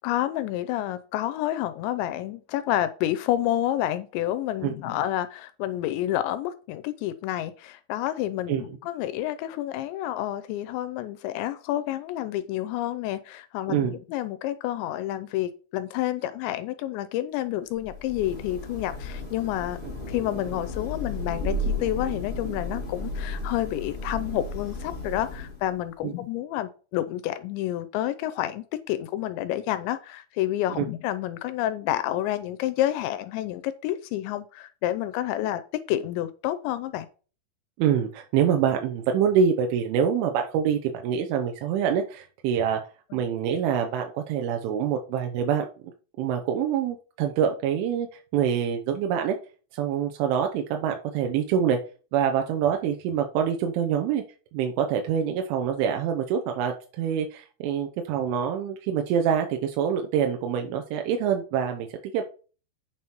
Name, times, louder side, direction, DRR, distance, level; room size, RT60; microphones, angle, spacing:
voice 1, 0.0-19.8 20.1-37.1 43.1-43.2, left 13 dB, 80° left, 12 dB, 2.8 m, -29 dB
Thunder / Rain, 17.8-25.8, left 2 dB, 25° left, 1.3 m, -33 dB
voice 2, 37.8-42.8 43.1-45.7 46.2-48.1 48.3-49.4 49.7-51.8 52.1-54.2 54.5-62.2, right 8 dB, 90° right, 4 dB, 3.4 m, -25 dB
9.1 x 6.2 x 4.5 m, 0.36 s
omnidirectional pair, 5.4 m